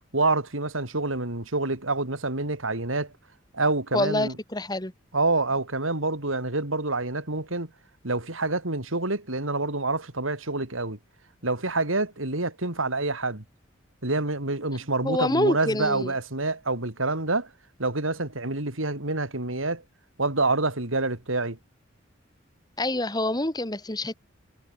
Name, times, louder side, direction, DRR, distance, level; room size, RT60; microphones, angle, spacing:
voice 1, 0.1-3.1 3.5-4.3 5.1-7.7 8.0-11.0 11.4-13.4 14.0-17.5 17.8-19.8 20.2-21.6, right 2 dB, 90° right, 4.1 m, -27 dB
voice 2, 3.9-4.9 15.0-16.1 22.8-24.2, left 1 dB, 20° left, 2.7 m, -26 dB
head